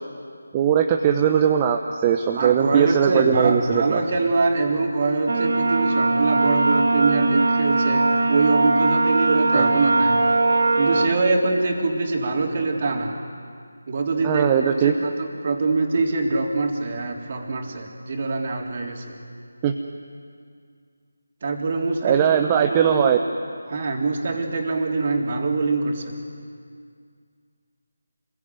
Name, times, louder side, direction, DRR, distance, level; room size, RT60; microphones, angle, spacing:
voice 1, 0.5-4.0 9.5-9.7 14.2-14.9 19.6-19.7 22.0-23.2, right 8 dB, 20° right, 3 dB, 1.0 m, -20 dB
voice 2, 2.3-10.2 10.8-13.2 13.9-19.2 21.4-23.1 23.7-26.2, right 3 dB, 35° right, 1 dB, 3.7 m, -24 dB
sound 1, 5.3-11.1, right 2 dB, 55° right, 2.6 m, -20 dB
28.0 x 21.5 x 9.4 m, 2.2 s
figure-of-eight pair, 160°, 0 cm